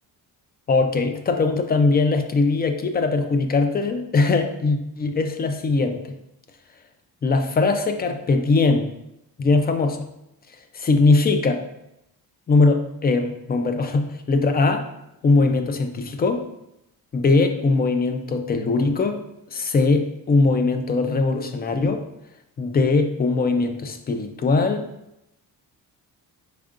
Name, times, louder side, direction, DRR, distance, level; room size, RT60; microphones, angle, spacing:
voice 1, 0.7-6.1 7.2-8.9 9.4-10.1 10.7-11.6 12.5-14.9 15.2-16.5 17.1-19.2 19.5-22.0 22.6-24.9, left 3 dB, 25° left, 7 dB, 0.4 m, -21 dB
4.9 x 4.3 x 2.4 m, 0.84 s
cardioid pair, 135°, 38 cm